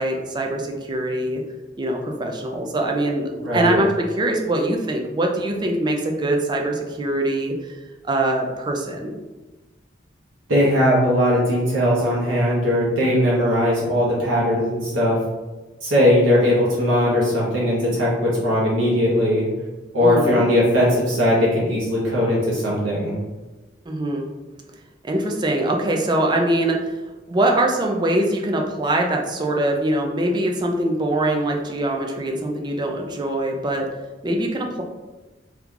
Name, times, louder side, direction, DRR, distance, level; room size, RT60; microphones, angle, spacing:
voice 1, 0.0-1.4 1.8-7.8 8.0-9.2 20.0-20.4 23.9-24.3 25.0-27.0 27.3-33.9 34.2-34.8, right 1 dB, 25° right, 1 dB, 0.4 m, -23 dB
voice 2, 3.4-3.8 10.5-15.2 15.8-19.5 19.9-23.2, left 1 dB, 80° right, -6 dB, 0.9 m, -19 dB
2.9 x 2.3 x 3.6 m, 1.2 s
head